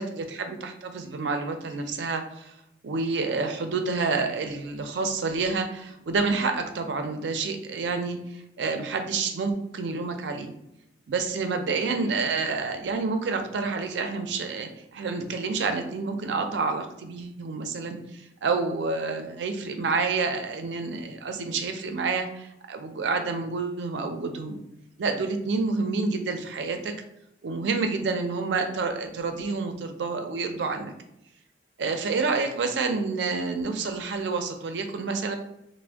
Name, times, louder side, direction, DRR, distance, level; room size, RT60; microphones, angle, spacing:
voice 1, 0.0-2.5 2.8-10.5 11.1-24.6 25.0-26.9 27.4-30.9 31.8-35.4, right 4 dB, 90° right, 6 dB, 0.4 m, -28 dB
2.5 x 2.1 x 3.3 m, 0.81 s
head